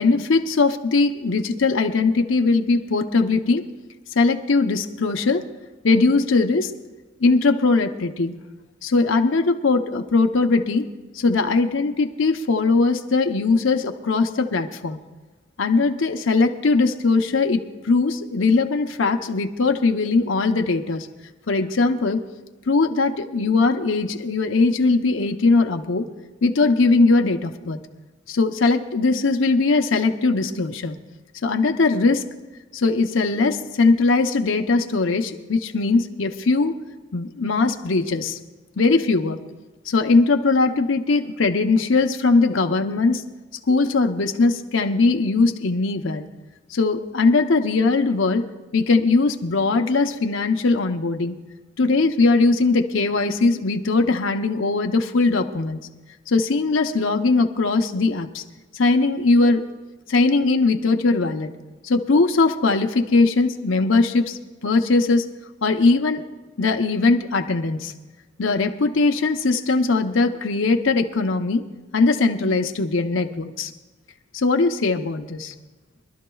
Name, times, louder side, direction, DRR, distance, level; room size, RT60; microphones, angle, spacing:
voice 1, 0.0-3.6 4.1-5.5 5.8-6.7 7.2-8.3 8.8-10.9 11.1-15.0 15.6-21.1 21.5-22.2 22.7-26.1 26.4-27.8 28.3-31.0 31.4-32.2 32.7-36.8 37.1-38.4 38.8-39.4 39.9-43.2 43.7-46.2 46.7-48.5 48.7-51.4 51.8-55.8 56.3-58.4 58.7-59.6 60.1-61.5 61.8-65.3 65.6-66.2 66.6-67.9 68.4-71.6 71.9-73.7 74.3-75.5, left 3 dB, 85° left, 5 dB, 0.8 m, -20 dB
24.5 x 12.0 x 2.3 m, 1.2 s
head